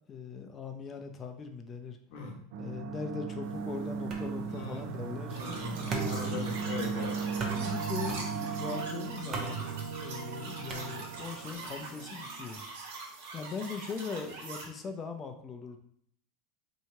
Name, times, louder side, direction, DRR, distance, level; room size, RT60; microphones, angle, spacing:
voice 1, 0.1-2.0 2.6-6.4 7.4-9.6 10.0-12.7 13.3-15.8, left 5 dB, 30° left, 5 dB, 0.6 m, -40 dB
voice 2, 2.1-2.4 4.5-4.9 5.3-7.2, left 4 dB, 65° left, -1 dB, 1.1 m, -40 dB
sound 1, 2.5-12.3, right 5 dB, 60° right, 0.5 m, -37 dB
sound 2, 4.1-11.5, right 5 dB, 35° right, 0.8 m, -40 dB
sound 3, 5.3-14.7, right 3 dB, 75° right, 1.1 m, -43 dB
2.9 x 2.7 x 4.4 m, 0.66 s
hypercardioid pair, 100°, 0 cm